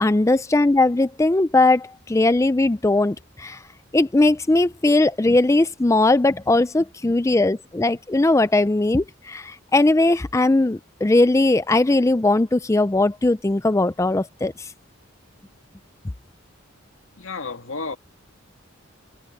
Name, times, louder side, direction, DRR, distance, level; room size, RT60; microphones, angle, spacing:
voice 1, 0.0-3.6 3.9-14.5, left 2 dB, 15° left, 0.4 m, -19 dB
voice 2, 17.2-18.0, left 4 dB, 85° left, 1.9 m, -31 dB
head